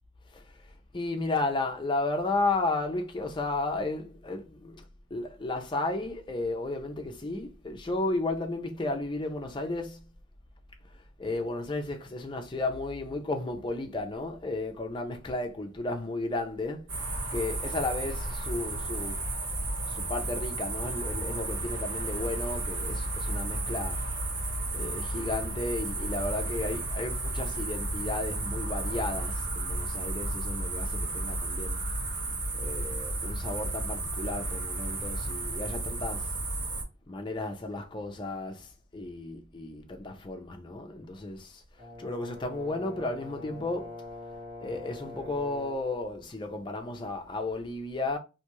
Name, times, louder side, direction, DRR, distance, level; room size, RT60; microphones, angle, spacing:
voice 1, 0.3-4.8 5.1-10.1 10.8-17.0 17.3-19.2 19.9-24.0 24.7-31.8 32.2-36.3 37.1-44.0 44.6-48.2, left 2 dB, 25° left, 0.4 m, -33 dB
sound 1, 16.9-36.8, right 2 dB, 65° right, 1.0 m, -33 dB
Brass instrument, 41.8-45.9, left 2 dB, 50° right, 1.4 m, -43 dB
2.6 x 2.3 x 2.9 m
head